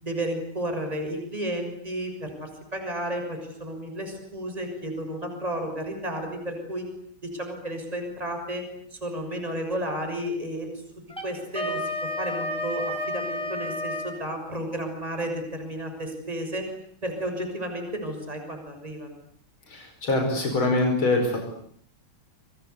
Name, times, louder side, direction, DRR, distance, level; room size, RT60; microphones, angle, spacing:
voice 1, 0.0-6.9 7.2-8.6 8.9-10.8 11.2-16.7 17.0-19.1, right 1 dB, 20° right, 4 dB, 6.7 m, -32 dB
Wind instrument woodwind instrument, 11.1-14.2, left 1 dB, ahead, 6.3 m, -31 dB
voice 2, 19.7-21.4, left 2 dB, 85° left, 4 dB, 5.9 m, -24 dB
29.0 x 25.0 x 8.3 m, 0.63 s
omnidirectional pair, 2.2 m